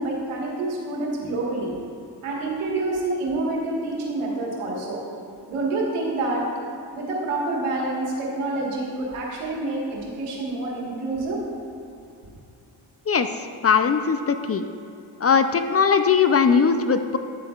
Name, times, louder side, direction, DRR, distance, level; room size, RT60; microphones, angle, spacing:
voice 1, 0.0-1.8 2.2-5.0 5.5-6.5 6.9-11.4, right 2 dB, 85° right, -3 dB, 1.6 m, -27 dB
voice 2, 13.1-14.6 15.2-17.2, left 6 dB, 30° left, 8 dB, 0.4 m, -20 dB
10.0 x 7.7 x 2.4 m, 2.6 s
supercardioid pair, 50°, 49 cm